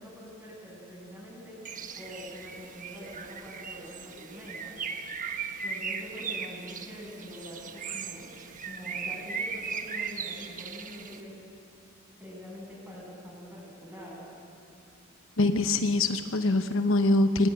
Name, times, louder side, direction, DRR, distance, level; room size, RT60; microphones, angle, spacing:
voice 1, 0.0-1.6 1.9-4.8 5.6-8.3 8.6-11.3 12.2-14.3, equal, 10° right, -4 dB, 7.9 m, -45 dB
Bird, 1.6-11.2, right 5 dB, 40° right, 1.2 m, -38 dB
voice 2, 15.4-17.5, left 2 dB, 65° left, 8 dB, 1.0 m, -24 dB
23.0 x 18.0 x 9.3 m, 2.5 s
head